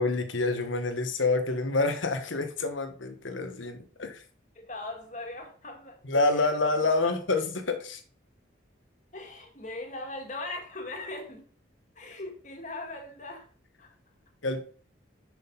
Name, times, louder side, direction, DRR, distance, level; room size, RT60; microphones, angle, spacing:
voice 1, 0.0-4.2 6.0-8.0 14.4-14.6, left 3 dB, 90° left, 7 dB, 1.4 m, -27 dB
voice 2, 4.6-6.0 6.3-6.4 7.0-7.1 9.1-11.5 12.0-13.5 13.8-13.9, left 2 dB, 40° left, 3 dB, 1.8 m, -39 dB
6.4 x 6.3 x 5.4 m, 0.43 s
head